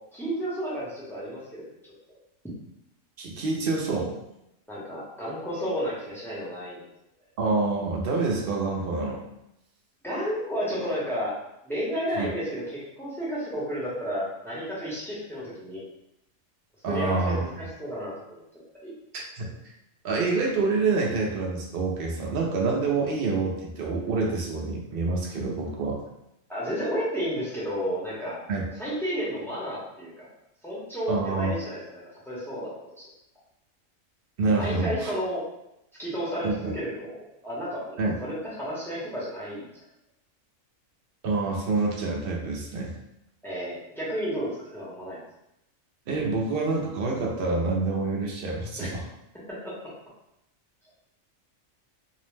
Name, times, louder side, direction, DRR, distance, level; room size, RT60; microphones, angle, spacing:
voice 1, 0.1-1.7 2.1-2.2 4.7-6.8 10.0-11.4 11.6-15.8 16.9-18.4 18.8-18.9 26.5-28.4 28.8-30.3 30.6-32.7 33.0-33.1 34.6-35.4 36.0-39.8 43.4-45.2 48.8-48.9 49.5-49.8, equal, ahead, -8 dB, 0.6 m, -32 dB
voice 2, 3.2-4.1 7.4-9.2 12.2-12.3 16.8-17.4 19.4-19.5 20.0-26.0 28.5-28.6 31.1-31.5 34.4-35.1 36.4-36.7 38.0-38.1 41.2-42.9 46.1-49.0, right 3 dB, 60° right, -1 dB, 0.6 m, -27 dB
2.6 x 2.0 x 3.2 m, 0.85 s
omnidirectional pair, 1.4 m